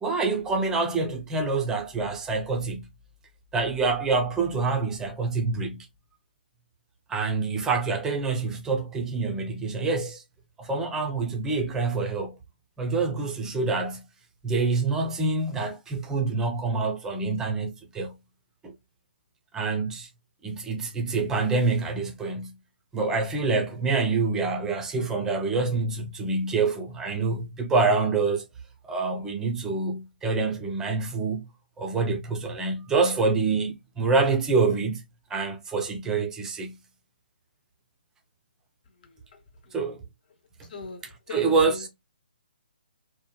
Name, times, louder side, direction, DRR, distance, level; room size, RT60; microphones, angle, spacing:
voice 1, 0.0-2.9 3.5-5.9 7.1-10.2 10.6-12.4 12.8-14.0 14.4-18.1 18.6-18.7 19.5-20.1 20.4-22.5 22.9-28.4 28.8-31.4 31.8-35.0 35.3-36.7 39.7-40.0 41.3-41.9, right 4 dB, 10° right, 0.4 m, -26 dB
voice 2, 39.0-39.9 40.7-41.9, left 3 dB, 50° left, 0.9 m, -42 dB
2.8 x 2.1 x 2.2 m
hypercardioid pair, 155°, 6 cm